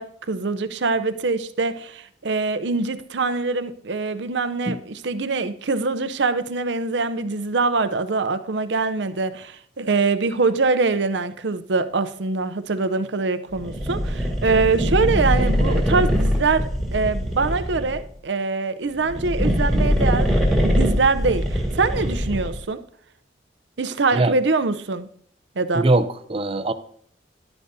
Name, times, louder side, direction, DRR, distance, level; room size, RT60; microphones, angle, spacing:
voice 1, 0.0-22.8 23.8-25.1 25.6-25.9, right 4 dB, 65° right, 12 dB, 0.7 m, -24 dB
sound 1, 13.6-18.0 18.9-22.6, equal, ahead, 2.0 m, -22 dB
voice 2, 25.7-26.7, right 2 dB, 30° right, 11 dB, 0.6 m, -21 dB
11.5 x 10.0 x 2.7 m, 0.63 s
head